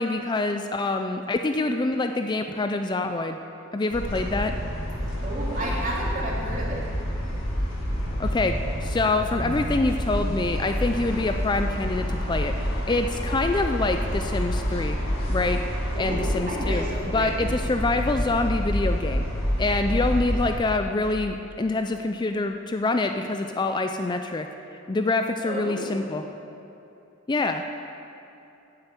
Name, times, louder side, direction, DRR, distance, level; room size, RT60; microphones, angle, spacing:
voice 1, 0.0-3.4 3.7-4.5 8.2-8.5 8.8-12.5 12.9-15.0 15.3-15.6 16.0-19.2 19.6-24.5 24.9-26.2 27.3-27.6, left 2 dB, 20° left, 6 dB, 0.4 m, -26 dB
sound 1, 3.9-20.5, equal, 70° left, 2.3 m, -28 dB
voice 2, 5.2-6.8 15.9-17.4 25.4-26.1, right 1 dB, 40° right, -4 dB, 2.5 m, -32 dB
9.7 x 7.9 x 8.3 m, 2.8 s
head